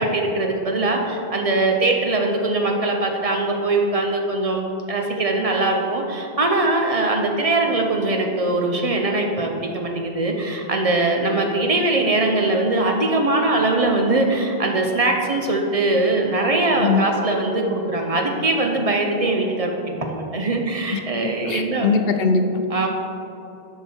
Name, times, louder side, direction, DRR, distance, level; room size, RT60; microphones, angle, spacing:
voice 1, 0.0-19.7 20.0-21.9 22.7-22.9, right 2 dB, 40° right, 1 dB, 0.7 m, -21 dB
voice 2, 21.4-22.6, left 4 dB, 70° left, 7 dB, 0.8 m, -20 dB
7.1 x 5.8 x 4.4 m, 2.9 s
omnidirectional pair, 1.1 m